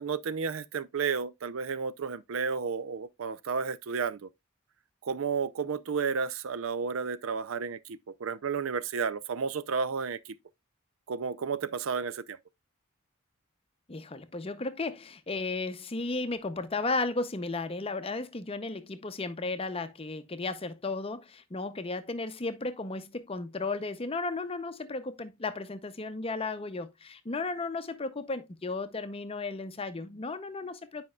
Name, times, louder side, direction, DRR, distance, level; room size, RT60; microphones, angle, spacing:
voice 1, 0.0-4.3 5.0-10.4 11.1-12.4, right 5 dB, 75° right, 0.5 m, -32 dB
voice 2, 13.9-31.0, left 3 dB, 30° left, 0.6 m, -34 dB
9.7 x 5.2 x 2.3 m
head